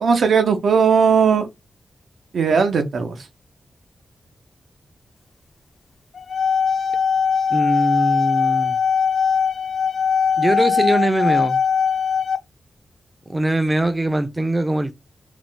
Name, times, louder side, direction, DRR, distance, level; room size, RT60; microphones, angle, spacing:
voice 1, 0.0-1.5 2.3-3.3, right 6 dB, 80° right, 0.5 m, -17 dB
sound 1, 6.1-12.4, left 6 dB, 60° left, 0.3 m, -20 dB
voice 2, 7.5-8.8 10.4-11.6 13.3-14.9, right 1 dB, 15° right, 0.3 m, -21 dB
2.4 x 2.0 x 3.6 m
wide cardioid pair, 150°, 0 cm